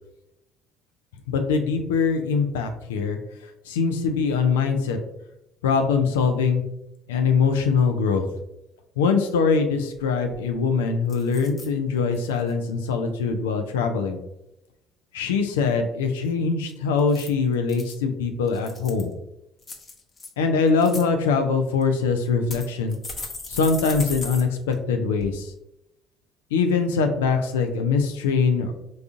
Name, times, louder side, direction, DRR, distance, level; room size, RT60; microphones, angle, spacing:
voice 1, 1.3-3.2 3.7-5.0 5.6-6.6 7.1-8.3 9.0-14.2 15.1-19.1 20.4-23.0 23.5-25.5 26.5-28.7, left 5 dB, 80° left, 6 dB, 0.3 m, -22 dB
sound 1, 10.3-10.7 11.1-11.7 12.1-12.5 17.0-18.0 18.5-19.1 19.6-20.3 20.7-21.0 21.8-21.9 22.5-24.4 24.7-24.8 25.2-25.3, left 3 dB, 35° left, 0.7 m, -37 dB
3.9 x 2.3 x 2.4 m, 0.87 s
hypercardioid pair, 55°, 0 cm